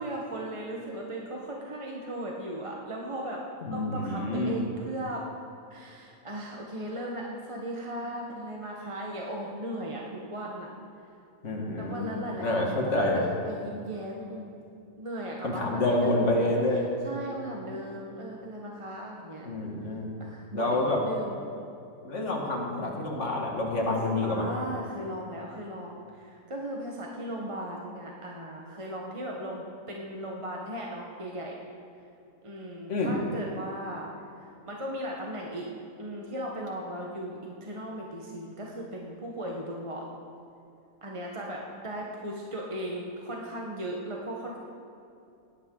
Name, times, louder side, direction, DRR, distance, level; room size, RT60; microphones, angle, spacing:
voice 1, 0.0-3.4 3.7-5.3 5.7-10.7 11.8-14.5 15.0-16.5 17.0-19.5 20.2-21.4 23.8-24.0 24.2-31.5 32.4-34.1 34.7-35.7 36.0-40.1 41.0-44.6, right 1 dB, 25° right, -2 dB, 1.1 m, -37 dB
voice 2, 3.6-4.6 11.4-12.1 12.4-13.2 15.4-16.9 19.5-20.1 20.5-21.0 22.0-24.5 32.9-33.2, left 2 dB, 55° left, -1 dB, 2.2 m, -28 dB
18.0 x 11.0 x 3.8 m, 2.6 s
omnidirectional pair, 1.5 m